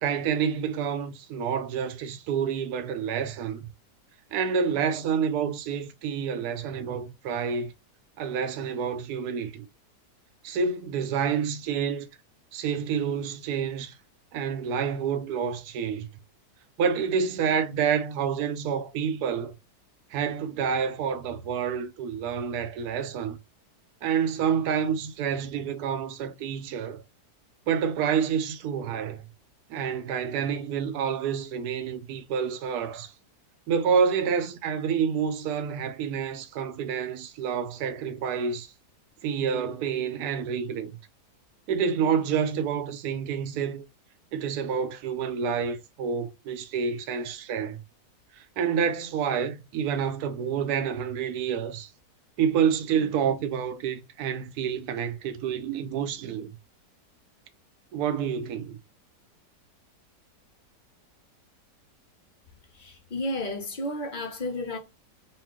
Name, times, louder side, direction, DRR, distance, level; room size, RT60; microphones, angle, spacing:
voice 1, 0.0-3.7 4.3-7.7 8.2-9.7 10.4-12.1 12.5-14.0 14.3-16.1 16.8-19.5 20.1-23.4 24.0-27.0 27.7-29.3 29.7-33.1 33.7-38.7 39.2-41.0 41.7-43.8 44.3-47.8 48.4-51.9 52.4-56.6 57.9-58.8, right 7 dB, 70° right, 1.0 m, -28 dB
voice 2, 62.7-64.8, left 1 dB, 80° left, 0.4 m, -32 dB
4.2 x 2.2 x 3.6 m
omnidirectional pair, 1.9 m